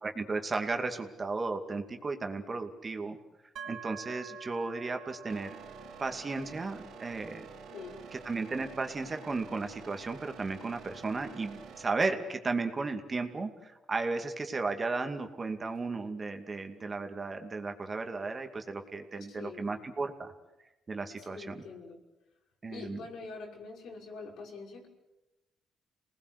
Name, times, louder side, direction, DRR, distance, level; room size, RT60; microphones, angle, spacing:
voice 1, 0.0-3.2 3.6-5.6 6.0-7.5 8.1-20.3 20.9-21.5 22.6-23.0, right 3 dB, 30° right, 6 dB, 2.5 m, -34 dB
sound 1, 3.6-17.2, right 4 dB, 70° right, 2.3 m, -52 dB
sound 2, 5.3-11.8, right 6 dB, 85° right, 3.4 m, -49 dB
voice 2, 7.7-8.0 19.3-19.7 21.2-22.0 22.7-24.9, left 4 dB, 75° left, 0 dB, 5.8 m, -45 dB
28.0 x 19.5 x 8.2 m, 0.96 s
cardioid pair, 90°, 0 cm